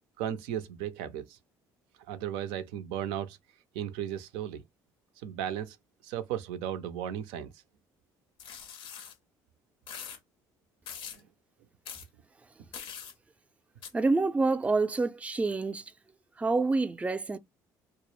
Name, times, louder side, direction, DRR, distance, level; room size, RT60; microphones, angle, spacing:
voice 1, 0.2-1.4 2.1-3.4 3.7-4.6 5.2-5.8 6.0-7.5 11.1-11.2, right 10 dB, 85° right, 0.4 m, -35 dB
sound 1, 8.4-9.1 9.9-10.2 10.9-11.2 11.8-12.1 12.7-13.1 13.8-13.9, left 8 dB, 75° left, 0.5 m, -42 dB
voice 2, 13.9-15.8 16.4-17.4, right 3 dB, 15° right, 0.3 m, -27 dB
2.1 x 2.0 x 3.0 m
supercardioid pair, 70°, 9 cm